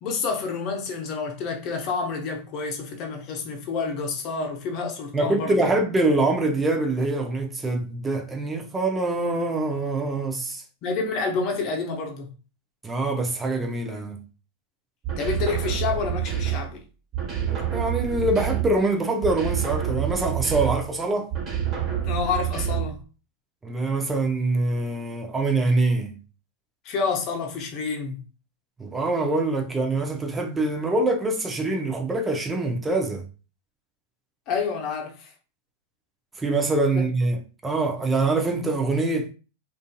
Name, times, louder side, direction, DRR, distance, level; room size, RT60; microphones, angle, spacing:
voice 1, 0.0-5.7 10.8-12.3 15.2-16.8 22.0-23.0 26.8-28.2 34.5-35.3 36.9-37.1, left 5 dB, 45° left, 0.8 m, -29 dB
voice 2, 5.1-10.6 12.8-14.2 17.4-21.3 23.6-26.2 28.8-33.2 36.4-39.3, right 2 dB, 15° right, 0.6 m, -24 dB
sound 1, 15.0-16.8 17.1-18.9 19.2-20.9 21.3-23.0, right 10 dB, 30° right, 1.2 m, -27 dB
2.6 x 2.5 x 2.2 m
hypercardioid pair, 95°, 0 cm